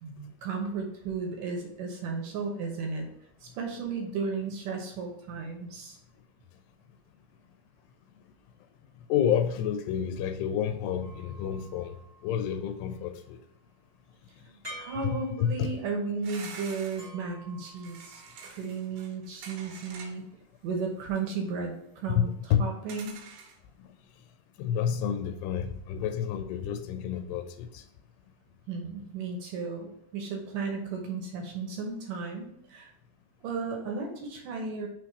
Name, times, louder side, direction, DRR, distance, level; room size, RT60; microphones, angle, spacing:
voice 1, 0.0-3.1 3.4-6.0 14.4-20.2 20.6-22.3 22.6-23.2 28.7-32.9 33.4-34.9, right 4 dB, 70° right, 1 dB, 2.2 m, -34 dB
voice 2, 9.1-12.0 12.2-13.4 15.0-15.8 22.2-22.7 24.6-27.8, left 8 dB, 85° left, 6 dB, 2.6 m, -29 dB
sound 1, 11.0-12.7 14.6-15.9 17.0-18.5, equal, 10° right, 1.2 m, -49 dB
sound 2, 16.2-17.1 17.8-20.4 20.7-20.8 22.9-23.6, right 5 dB, 90° right, 3.2 m, -46 dB
6.3 x 3.5 x 4.5 m, 0.73 s
omnidirectional pair, 4.7 m